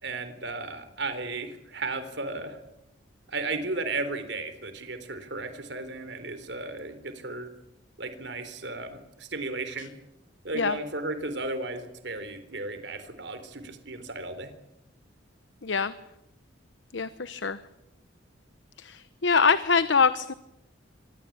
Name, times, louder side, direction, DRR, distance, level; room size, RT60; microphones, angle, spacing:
voice 1, 0.0-2.6 3.3-7.5 8.0-9.9 10.4-14.5, right 3 dB, 60° right, 10 dB, 3.6 m, -34 dB
voice 2, 15.6-15.9 16.9-17.6 18.8-20.3, left 5 dB, 70° left, 14 dB, 1.0 m, -24 dB
25.0 x 21.0 x 8.7 m, 0.88 s
head